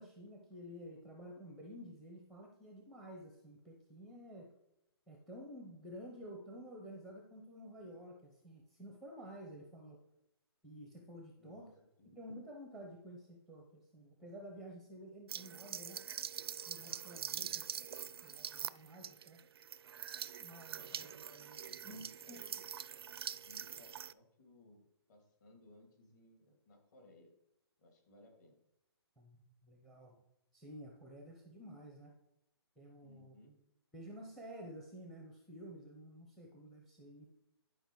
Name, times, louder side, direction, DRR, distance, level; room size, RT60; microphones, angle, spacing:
voice 1, 0.0-4.5 5.1-10.0 10.6-11.7 12.0-16.0 16.7-17.5 18.2-19.4 20.4-20.9 21.8-22.4 29.2-30.2 30.5-32.1 32.8-33.3 33.9-37.3, equal, ahead, 1 dB, 0.6 m, -51 dB
voice 2, 11.4-11.7 12.0-12.2 17.3-17.6 20.8-22.7 22.9-23.1 23.3-27.3 27.8-28.6 33.0-33.5, left 1 dB, 40° left, 2 dB, 2.6 m, -62 dB
sound 1, 15.3-24.1, right 8 dB, 65° right, 0.4 m, -44 dB
10.5 x 4.9 x 4.6 m, 0.85 s
hypercardioid pair, 165°, 14 cm